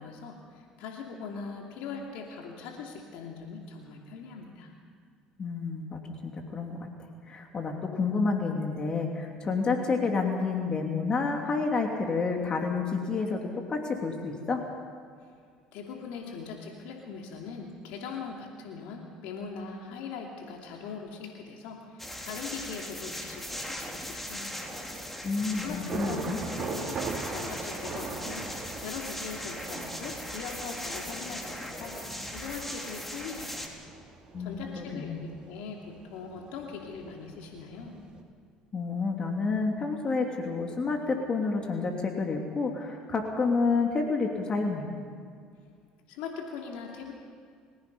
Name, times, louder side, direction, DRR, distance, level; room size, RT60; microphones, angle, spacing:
voice 1, 0.0-4.7 15.7-24.7 25.6-27.0 27.3-33.6 34.4-38.0 46.1-47.1, left 5 dB, 80° left, 0 dB, 2.8 m, -41 dB
voice 2, 5.4-6.9 7.3-14.6 25.2-26.4 34.3-35.2 38.7-44.9, left 4 dB, 35° left, 2 dB, 2.9 m, -29 dB
sound 1, 22.0-33.7, equal, 10° left, 3.4 m, -39 dB
Thunder / Rain, 24.6-38.2, right 4 dB, 40° right, 3.3 m, -41 dB
30.0 x 16.5 x 5.5 m, 2.2 s
supercardioid pair, 95°, 2 cm